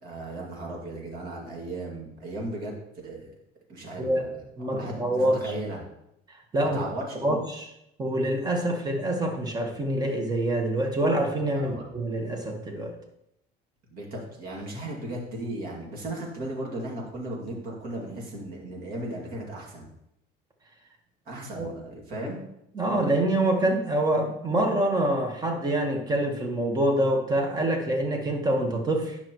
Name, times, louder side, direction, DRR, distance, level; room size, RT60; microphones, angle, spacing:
voice 1, 0.0-2.8 3.0-3.3 3.7-4.3 4.6-5.8 6.6-7.4 11.5-11.9 13.9-19.9 21.3-22.4, right 1 dB, 55° right, -1 dB, 2.4 m, -36 dB
voice 2, 4.6-5.5 6.5-6.8 7.2-7.7 8.0-12.9 21.6-21.7 22.7-29.2, right 1 dB, 20° right, 3 dB, 1.3 m, -26 dB
10.0 x 5.8 x 3.0 m, 0.81 s
cardioid pair, 135°, 18 cm